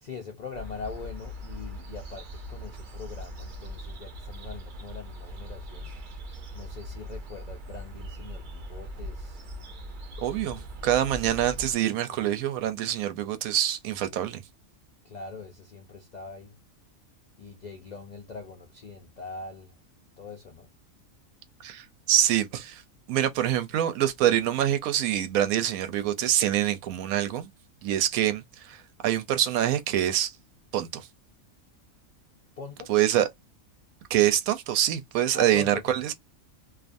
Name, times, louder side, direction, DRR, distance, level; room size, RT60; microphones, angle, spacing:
voice 1, 0.0-5.9 6.5-9.5 10.3-10.9 14.1-14.2 15.0-16.6 17.4-19.7 20.2-20.7 32.6-32.9 35.3-36.0, left 4 dB, 70° left, 0.4 m, -42 dB
sound 1, 0.5-11.7, equal, 55° right, 0.5 m, -40 dB
voice 2, 10.2-14.4 21.6-22.8 23.1-27.5 27.8-30.3 30.7-31.1 32.9-33.3 34.1-36.1, right 12 dB, 90° right, 1.0 m, -25 dB
2.4 x 2.4 x 2.5 m
omnidirectional pair, 1.4 m